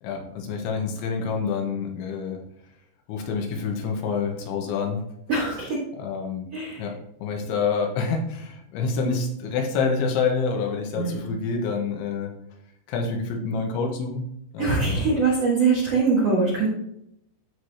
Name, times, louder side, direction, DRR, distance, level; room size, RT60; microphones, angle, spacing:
voice 1, 0.0-2.4 3.1-5.0 6.0-6.5 6.8-7.0 7.2-12.3 12.9-14.3 14.5-15.0, left 5 dB, 85° left, 2 dB, 3.5 m, -27 dB
voice 2, 5.3-5.8 6.5-6.8 10.9-11.2 14.6-16.7, right 4 dB, 65° right, -4 dB, 1.5 m, -22 dB
13.5 x 4.8 x 2.8 m, 0.76 s
omnidirectional pair, 5.4 m